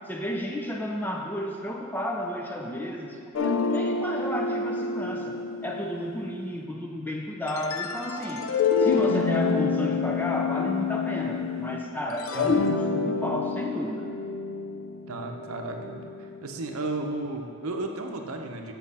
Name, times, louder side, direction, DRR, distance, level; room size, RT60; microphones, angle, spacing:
voice 1, 0.1-8.5 8.8-14.1, left 1 dB, 10° left, 1 dB, 0.4 m, -32 dB
sound 1, 3.3-6.5 7.5-11.8 12.1-16.3, left 4 dB, 65° left, 0.4 m, -28 dB
voice 2, 15.1-16.1 16.4-18.7, right 2 dB, 75° right, 3 dB, 0.7 m, -33 dB
7.4 x 5.9 x 4.2 m, 2.3 s
head